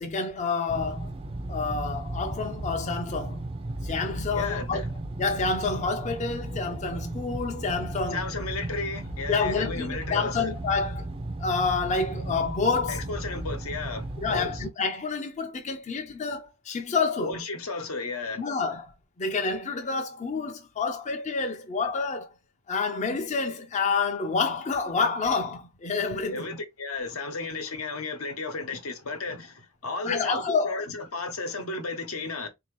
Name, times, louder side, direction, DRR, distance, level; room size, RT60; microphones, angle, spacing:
voice 1, 0.0-1.1 1.5-3.4 3.8-4.8 5.2-8.2 9.3-11.1 11.4-13.0 14.2-17.4 18.4-18.9 19.2-22.3 22.7-26.5 30.0-30.9, left 4 dB, 35° left, 0.5 m, -28 dB
sound 1, 0.7-14.7, right 1 dB, 25° right, 0.4 m, -35 dB
voice 2, 4.3-4.9 8.1-10.5 12.9-14.6 17.2-18.4 26.3-32.5, left 3 dB, 80° left, 1.0 m, -34 dB
3.8 x 2.7 x 3.0 m
head